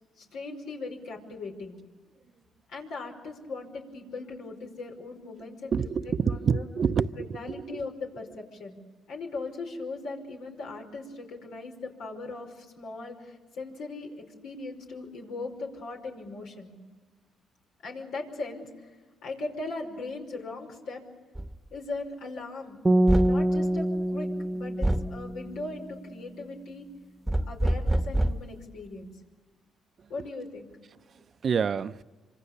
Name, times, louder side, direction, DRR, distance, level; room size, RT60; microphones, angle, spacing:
voice 1, 0.2-1.8 2.7-5.8 6.1-6.7 7.2-8.8 9.1-16.8 17.8-18.9 19.2-21.0 21.7-22.8 23.2-26.9 27.5-29.1 30.1-30.7, left 3 dB, 85° left, 5.3 m, -39 dB
voice 2, 5.7-7.8 31.4-32.0, right 6 dB, 50° right, 0.7 m, -27 dB
sound 1, 21.4-21.6 23.1-23.5 24.8-25.2 27.3-28.5, right 1 dB, 5° right, 1.3 m, -26 dB
sound 2, 22.9-26.0, right 1 dB, 20° right, 1.1 m, -26 dB
26.5 x 25.5 x 6.8 m
cardioid pair, 90°, 0 cm